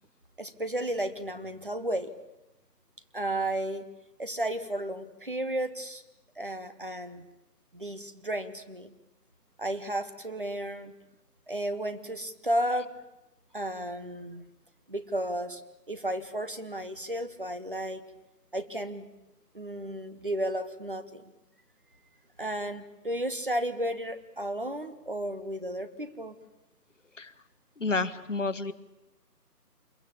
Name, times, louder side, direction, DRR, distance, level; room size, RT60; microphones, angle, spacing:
voice 1, 0.4-2.1 3.1-3.8 4.2-6.0 6.4-7.3 7.7-8.9 9.6-10.9 11.5-12.9 13.5-14.4 14.9-15.6 15.9-18.0 18.5-19.1 19.5-21.3 22.4-26.4, right 1 dB, 35° right, 10 dB, 1.1 m, -33 dB
voice 2, 27.8-28.7, left 3 dB, 50° left, 12 dB, 1.2 m, -30 dB
26.0 x 22.5 x 8.6 m, 0.94 s
figure-of-eight pair, 170°, 48 cm